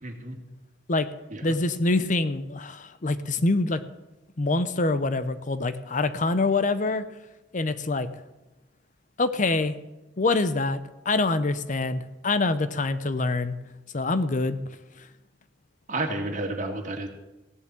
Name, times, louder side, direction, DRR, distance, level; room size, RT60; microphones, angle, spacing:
voice 1, 0.0-0.4 1.3-1.4 15.9-17.1, right 2 dB, 40° right, 3 dB, 2.4 m, -31 dB
voice 2, 1.4-3.8 4.4-7.1 7.5-8.1 9.2-9.8 10.2-10.8 11.0-13.6 13.9-14.6 15.0-15.1, left 3 dB, 40° left, 12 dB, 0.7 m, -25 dB
16.5 x 7.2 x 8.8 m, 1.0 s
head